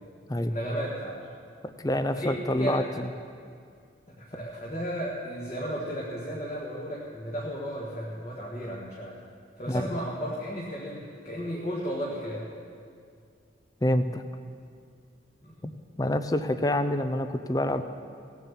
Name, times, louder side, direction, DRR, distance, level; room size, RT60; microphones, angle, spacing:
voice 1, 0.5-1.1 2.1-2.3 2.6-2.7 4.2-9.2 9.6-12.4 15.4-15.5, equal, 35° left, -5 dB, 1.5 m, -34 dB
voice 2, 1.6-2.8 9.7-10.0 13.8-14.2 15.6-15.7 16.0-17.8, left 1 dB, 20° left, 10 dB, 0.5 m, -27 dB
17.5 x 7.2 x 7.2 m, 2.3 s
head